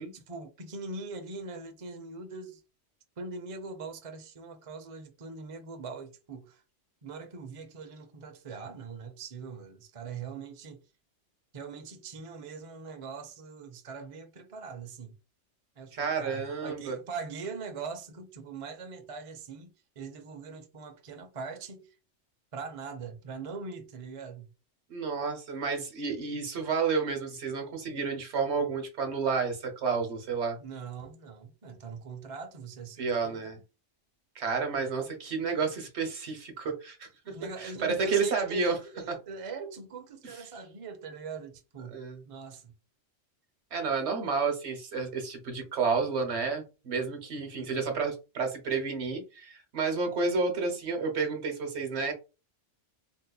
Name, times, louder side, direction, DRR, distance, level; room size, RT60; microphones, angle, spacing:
voice 1, 0.1-2.6 3.2-6.6 7.0-10.8 11.5-15.1 15.8-22.0 22.5-24.5 30.6-33.4 34.7-35.0 37.3-42.7 47.4-47.7, right 4 dB, 40° right, 0.5 m, -42 dB
voice 2, 15.9-17.0 24.9-30.6 33.0-33.6 34.3-38.8 39.1-39.2 41.9-42.2 43.7-52.1, right 5 dB, 70° right, 1.2 m, -31 dB
3.9 x 2.8 x 2.2 m
omnidirectional pair, 1.2 m